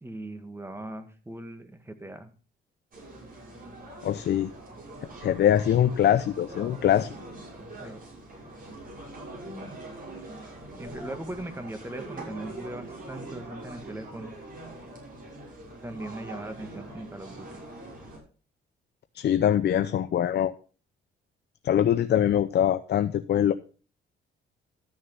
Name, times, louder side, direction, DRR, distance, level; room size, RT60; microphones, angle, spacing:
voice 1, 0.0-2.3 7.8-8.0 10.8-14.3 15.8-17.6, right 1 dB, 10° right, 8 dB, 1.9 m, -39 dB
sound 1, 2.9-18.2, right 2 dB, 45° right, 5.9 m, -43 dB
voice 2, 4.0-4.5 5.2-7.1 19.1-20.5 21.6-23.5, left 10 dB, 55° left, 9 dB, 0.7 m, -23 dB
13.0 x 6.4 x 5.6 m, 0.37 s
cardioid pair, 90°, 20 cm